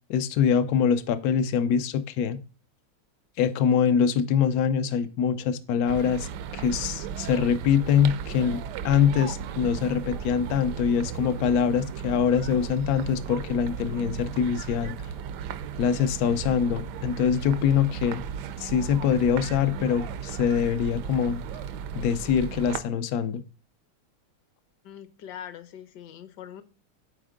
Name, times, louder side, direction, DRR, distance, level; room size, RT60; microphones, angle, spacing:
voice 1, 0.1-2.4 3.4-6.3 6.5-14.9 15.8-18.2 18.6-21.4 21.9-23.4, left 7 dB, 90° left, 10 dB, 0.8 m, -24 dB
sound 1, 5.9-22.8, right 8 dB, 80° right, 0.9 m, -36 dB
voice 2, 24.8-26.6, left 10 dB, 65° left, 12 dB, 1.1 m, -42 dB
8.0 x 4.4 x 3.7 m, 0.36 s
omnidirectional pair, 2.3 m